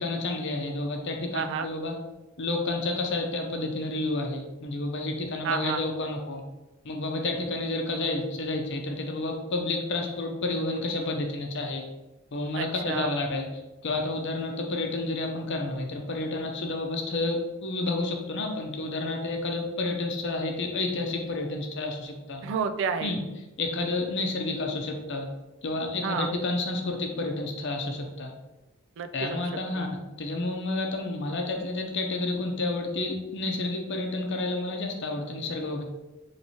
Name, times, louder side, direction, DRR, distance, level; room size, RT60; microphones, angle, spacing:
voice 1, 0.0-2.0 2.4-6.4 6.8-11.8 12.3-13.5 13.8-22.4 23.0-23.2 23.6-25.3 25.6-28.3 29.1-29.9 30.2-35.8, left 2 dB, 60° left, 3 dB, 0.7 m, -30 dB
voice 2, 1.3-1.7 5.4-5.8 12.5-13.1 22.4-23.1 26.0-26.3 29.0-29.5 29.7-29.8, right 6 dB, 60° right, 9 dB, 0.3 m, -30 dB
4.5 x 3.3 x 2.8 m, 1.1 s
head